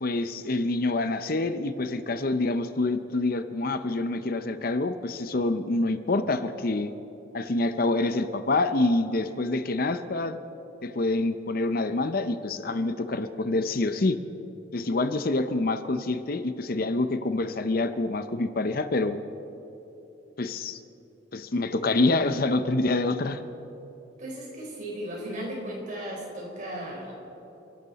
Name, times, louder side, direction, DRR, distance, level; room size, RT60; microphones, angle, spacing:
voice 1, 0.0-6.9 7.3-10.4 10.8-14.2 14.7-19.2 20.4-20.8 21.3-23.4, left 2 dB, 50° left, 10 dB, 0.6 m, -26 dB
voice 2, 24.2-27.1, right 1 dB, 40° right, -2 dB, 4.2 m, -36 dB
30.0 x 11.5 x 4.1 m, 3.0 s
head